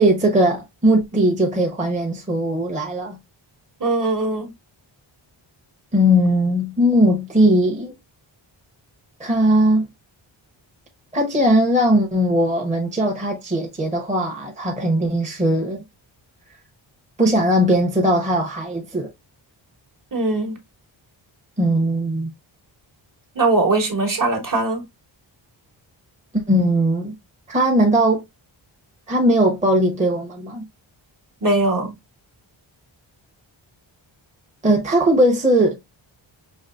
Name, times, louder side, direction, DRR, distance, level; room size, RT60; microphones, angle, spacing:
voice 1, 0.0-3.2 5.9-7.9 9.2-9.9 11.1-15.8 17.2-19.1 21.6-22.3 26.3-27.1 27.5-28.2 29.1-30.6 34.6-35.8, equal, 15° right, 0.8 m, -19 dB
voice 2, 3.8-4.5 20.1-20.6 23.3-24.8 31.4-31.9, right 2 dB, 45° right, 1.2 m, -20 dB
5.4 x 3.0 x 2.3 m
wide cardioid pair, 140°, 47 cm